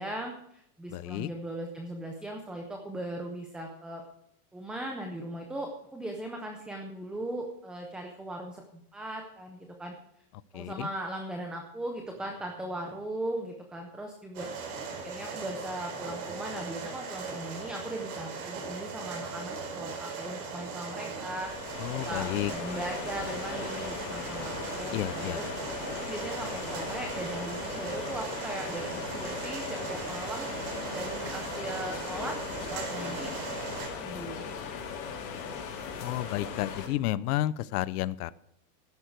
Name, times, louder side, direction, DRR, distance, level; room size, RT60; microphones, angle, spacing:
voice 1, 0.0-4.0 4.5-9.9 10.5-14.7 15.0-33.3 34.0-34.5, right 1 dB, ahead, 2 dB, 0.4 m, -39 dB
voice 2, 0.9-1.3 10.5-10.9 21.8-22.5 24.9-25.4 36.0-38.3, left 14 dB, 65° left, 18 dB, 0.7 m, -31 dB
Heavy Rain, 14.3-33.9, right 5 dB, 60° right, 4.5 m, -38 dB
sound 1, 21.2-36.9, left 6 dB, 50° left, 3.7 m, -39 dB
13.0 x 10.5 x 4.6 m, 0.74 s
supercardioid pair, 150°, 49 cm